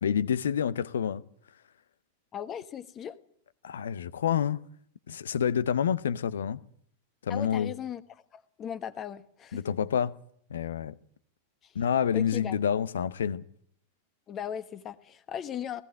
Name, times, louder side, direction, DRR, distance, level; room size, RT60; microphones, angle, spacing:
voice 1, 0.0-1.2 3.6-4.6 5.1-6.6 7.2-7.7 9.5-10.1 10.5-10.9 11.7-13.4, left 8 dB, 65° left, 0.8 m, -28 dB
voice 2, 2.3-3.2 7.3-8.0 8.3-9.7 11.6-11.7 12.1-12.6 14.3-15.8, left 9 dB, 30° left, 1.3 m, -38 dB
18.5 x 16.0 x 9.0 m
figure-of-eight pair, 90°, 0 cm